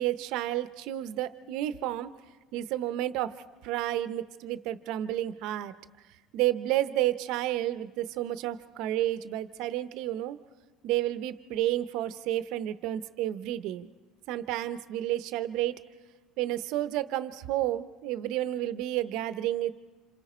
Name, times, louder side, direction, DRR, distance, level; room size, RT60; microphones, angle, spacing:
voice 1, 0.0-2.1 2.5-3.4 3.6-5.7 6.3-10.4 10.8-13.9 14.3-15.8 16.4-19.7, right 13 dB, 70° right, 13 dB, 0.8 m, -31 dB
27.0 x 26.0 x 4.4 m, 1.3 s
supercardioid pair, 105°, 0 cm